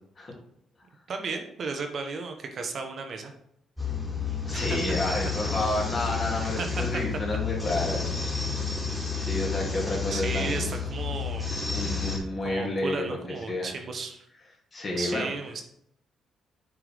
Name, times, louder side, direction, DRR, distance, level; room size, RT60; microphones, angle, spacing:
voice 1, 1.1-3.3 4.5-4.7 6.4-7.0 7.7-7.9 10.1-12.1 12.4-14.2 15.0-15.6, right 4 dB, 55° right, 5 dB, 1.0 m, -35 dB
sound 1, 3.8-12.2, left 5 dB, 5° left, 2.2 m, -30 dB
voice 2, 4.4-8.0 9.2-10.7 11.7-13.2 13.5-13.7 14.7-15.3, left 2 dB, 40° left, -2 dB, 2.6 m, -30 dB
7.4 x 4.5 x 3.5 m, 0.72 s
cardioid pair, 90°, 0 cm